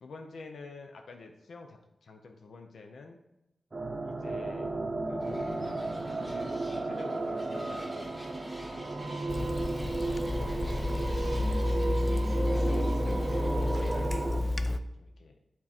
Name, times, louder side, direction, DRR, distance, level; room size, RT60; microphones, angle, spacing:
voice 1, 0.0-3.2 4.0-4.7 5.1-8.3 8.6-9.8 10.2-11.4 12.1-14.3 14.6-15.4, left 3 dB, 85° left, 4 dB, 0.6 m, -48 dB
sound 1, 3.7-14.4, right 2 dB, 35° right, 0.6 m, -33 dB
sound 2, 5.2-14.0, equal, 5° left, 1.5 m, -51 dB
Water tap faucet / Sink (filling or washing), 9.3-14.8, left 1 dB, 25° left, 0.3 m, -30 dB
8.5 x 3.7 x 4.3 m, 0.90 s
wide cardioid pair, 150°, 0 cm